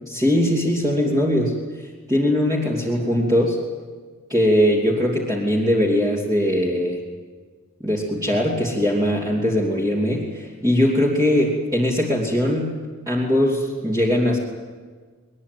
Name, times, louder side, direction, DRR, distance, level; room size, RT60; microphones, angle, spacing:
voice 1, 0.1-1.5 2.1-3.6 4.3-7.0 7.8-12.7 13.1-14.4, equal, 15° right, -5 dB, 3.0 m, -20 dB
22.0 x 21.0 x 9.5 m, 1.5 s
head